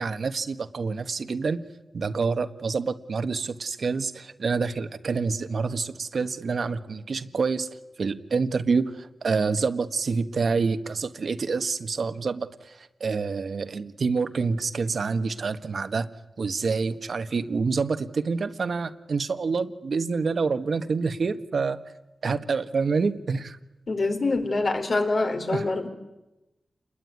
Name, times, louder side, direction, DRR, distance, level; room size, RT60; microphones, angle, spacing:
voice 1, 0.0-1.6 1.9-7.7 8.0-16.1 16.4-21.8 22.2-23.6 25.5-25.7, right 4 dB, 70° right, 9 dB, 1.6 m, -27 dB
voice 2, 23.9-25.9, left 3 dB, 60° left, 4 dB, 4.5 m, -25 dB
29.0 x 21.5 x 9.6 m, 1.0 s
wide cardioid pair, 75°, 0 cm